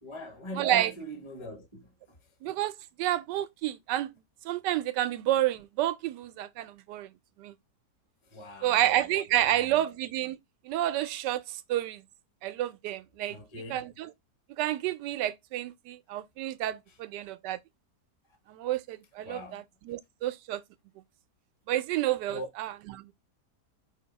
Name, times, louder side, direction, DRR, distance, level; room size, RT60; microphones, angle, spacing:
voice 1, 0.0-2.3 8.2-9.1 9.3-9.8 11.5-11.6 13.3-13.8 16.9-17.0 19.2-19.6 22.3-22.5, equal, 20° left, 0.8 m, -43 dB
voice 2, 0.6-0.9 2.4-2.7 3.0-4.1 4.4-7.1 7.4-7.5 8.6-10.4 10.6-12.0 12.4-13.4 13.7-14.1 14.6-17.6 18.5-20.6 21.7-22.7 22.9-23.1, right 13 dB, 85° right, 1.2 m, -29 dB
4.8 x 2.8 x 4.0 m
omnidirectional pair, 1.8 m